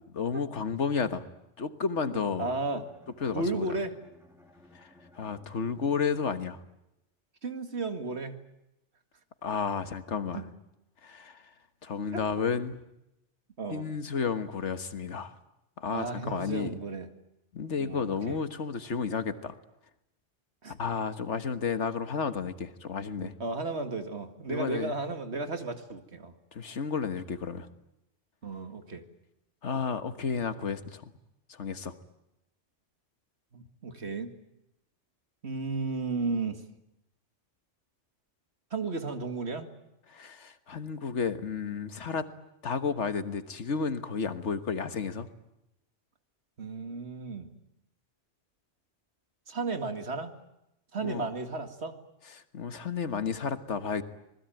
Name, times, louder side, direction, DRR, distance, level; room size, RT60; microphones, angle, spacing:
voice 1, 0.1-1.2 1.6-2.5 3.2-3.7 4.7-6.6 9.4-10.5 11.0-11.5 11.8-12.8 13.7-15.3 15.8-16.8 17.5-19.6 20.7-23.3 24.5-24.9 26.5-27.7 29.6-31.1 31.5-31.9 40.1-42.3 42.6-45.3 51.0-51.2 52.3-54.0, left 5 dB, 80° left, 10 dB, 1.7 m, -32 dB
voice 2, 2.0-2.8 3.3-4.0 7.4-8.4 10.3-10.4 12.1-12.2 13.6-13.9 15.9-17.1 17.8-18.4 20.6-20.7 23.2-26.3 28.4-29.0 33.5-34.3 35.4-36.6 38.7-39.7 46.6-47.5 49.5-50.3 50.9-51.9, right 3 dB, 65° right, 7 dB, 2.3 m, -34 dB
Bowed string instrument, 2.5-6.8, left 2 dB, ahead, 2.9 m, -59 dB
27.0 x 20.0 x 9.1 m, 0.86 s
omnidirectional pair, 1.2 m